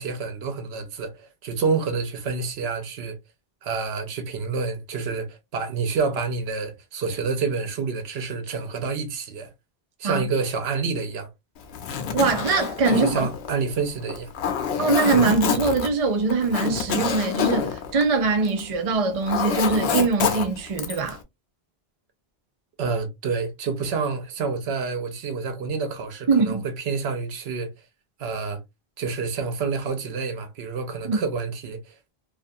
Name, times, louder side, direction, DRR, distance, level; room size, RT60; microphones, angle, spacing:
voice 1, 0.0-3.2 3.6-9.5 10.0-11.3 12.9-14.3 22.8-27.7 28.2-28.6 29.0-32.1, right 4 dB, 85° right, 0.9 m, -28 dB
Zipper (clothing), 11.6-18.7 19.0-21.1, left 7 dB, 90° left, 0.8 m, -27 dB
voice 2, 12.1-13.3 14.8-21.2 26.3-26.6 31.0-31.2, right 4 dB, 45° right, 0.6 m, -22 dB
2.5 x 2.3 x 2.6 m
omnidirectional pair, 1.0 m